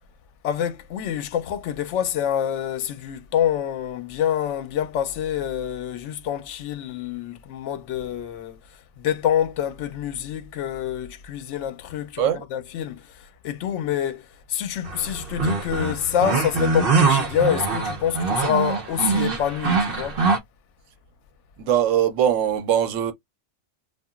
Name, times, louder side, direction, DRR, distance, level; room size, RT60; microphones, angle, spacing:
voice 1, 0.4-8.6 9.0-20.2, left 9 dB, 75° left, 0.9 m, -26 dB
sound 1, 14.8-20.4, right 4 dB, 55° right, 0.9 m, -23 dB
voice 2, 21.6-23.1, right 9 dB, 90° right, 1.0 m, -21 dB
2.8 x 2.5 x 2.3 m
omnidirectional pair, 1.3 m